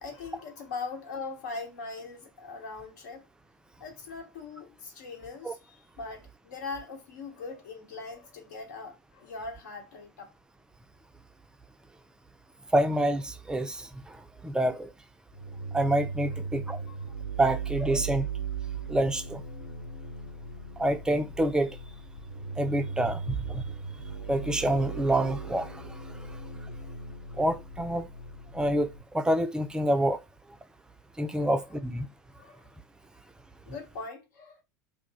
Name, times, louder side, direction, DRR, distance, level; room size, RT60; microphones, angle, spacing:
voice 1, 0.0-3.3 3.8-10.3 16.9-17.0 31.4-31.8 32.4-32.6 33.7-34.6, left 4 dB, 65° left, 1.0 m, -41 dB
voice 2, 12.7-13.9 14.4-14.9 15.7-16.8 17.4-18.3 18.9-19.4 20.8-21.8 22.6-23.6 24.3-25.8 27.4-28.1 28.5-28.9 29.1-30.2 31.2-32.1, right 1 dB, 5° right, 0.4 m, -27 dB
sound 1, 15.3-29.0, right 5 dB, 85° left, 1.2 m, -38 dB
2.5 x 2.2 x 3.8 m
figure-of-eight pair, 80°, 10 cm